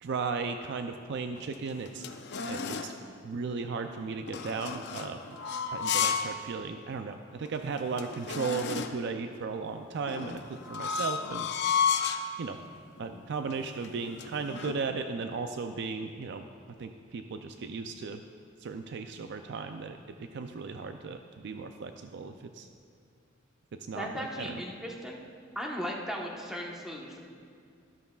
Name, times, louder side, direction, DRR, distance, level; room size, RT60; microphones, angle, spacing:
voice 1, 0.0-2.0 2.5-2.9 3.2-5.2 5.7-11.5 12.4-12.6 13.0-16.5 16.8-18.2 18.6-22.7 23.7-24.6, right 4 dB, 60° right, 7 dB, 0.4 m, -36 dB
sound 1, 1.4-3.0 4.3-6.4 6.8-6.9 7.5-7.6 7.7-9.1 10.1-12.3 13.0-13.2 13.5-14.8, left 6 dB, 60° left, 0.5 m, -32 dB
voice 2, 23.9-25.2 25.5-27.2, equal, ahead, -2 dB, 1.1 m, -37 dB
12.5 x 12.0 x 2.3 m, 2.3 s
head